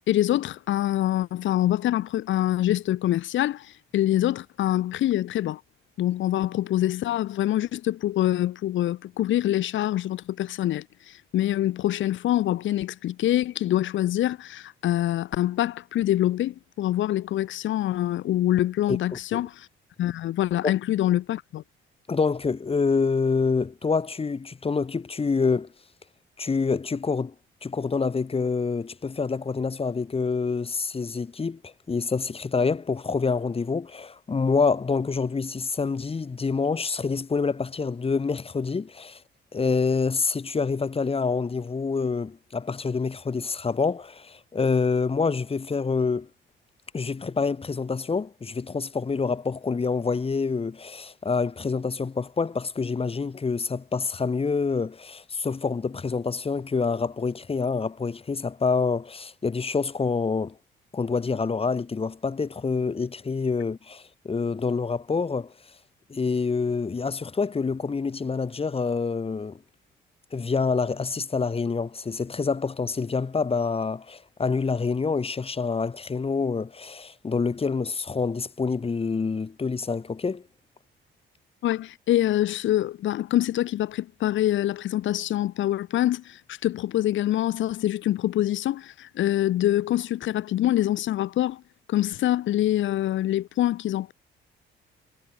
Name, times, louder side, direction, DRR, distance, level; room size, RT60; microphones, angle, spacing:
voice 1, 0.1-5.6 6.0-19.7 20.0-21.6 81.6-91.6 91.9-94.1, left 13 dB, 75° left, 1.1 m, -25 dB
voice 2, 22.1-25.7 26.4-27.3 27.6-39.2 39.5-46.3 46.9-60.6 60.9-65.5 66.1-69.6 70.3-80.4, left 4 dB, 30° left, 1.8 m, -27 dB
cardioid pair, 90°, 20 cm